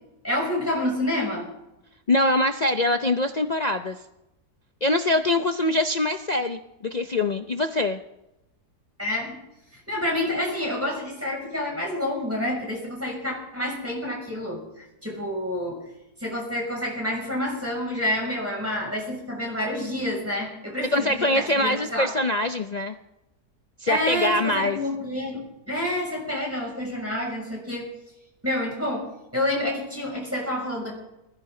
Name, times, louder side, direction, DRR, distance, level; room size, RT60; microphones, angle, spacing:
voice 1, 0.2-1.5 9.0-9.4 9.7-15.8 16.2-22.1 23.9-27.9 28.4-30.9, left 1 dB, 10° right, -3 dB, 6.3 m, -28 dB
voice 2, 2.1-4.0 4.8-8.0 20.9-23.0 23.8-24.8, left 1 dB, 70° left, 7 dB, 0.4 m, -23 dB
21.0 x 15.0 x 3.8 m, 0.92 s
omnidirectional pair, 1.7 m